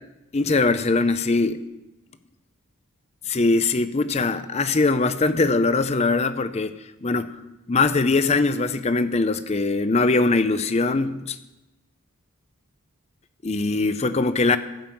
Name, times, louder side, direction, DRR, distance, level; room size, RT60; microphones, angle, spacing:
voice 1, 0.3-1.6 3.3-7.4 7.7-11.4 13.4-14.6, left 3 dB, 30° left, 12 dB, 0.5 m, -21 dB
16.0 x 5.5 x 7.6 m, 1.0 s
head